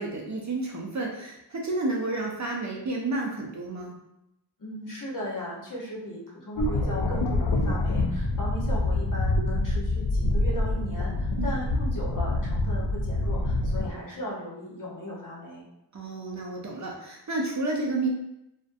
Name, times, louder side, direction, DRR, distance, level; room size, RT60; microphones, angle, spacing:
voice 1, 0.0-3.9 8.8-8.9 11.4-11.6 15.9-18.1, right 2 dB, 40° right, -2 dB, 0.5 m, -31 dB
voice 2, 4.6-15.7, left 1 dB, 45° left, -4 dB, 0.8 m, -37 dB
sound 1, 6.6-13.9, left 2 dB, 75° left, 0.5 m, -26 dB
2.5 x 2.1 x 2.5 m, 0.85 s
wide cardioid pair, 90°, 44 cm